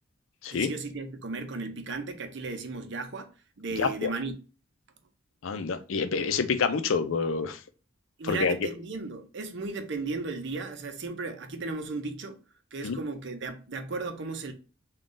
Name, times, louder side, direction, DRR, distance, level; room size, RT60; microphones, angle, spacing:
voice 1, 0.5-3.3 3.6-4.4 8.2-12.4 12.7-14.5, right 3 dB, 60° right, 0.6 m, -35 dB
voice 2, 3.8-4.1 5.4-7.6 8.2-8.6 12.8-13.0, left 5 dB, 75° left, 0.5 m, -27 dB
3.8 x 2.4 x 3.6 m
head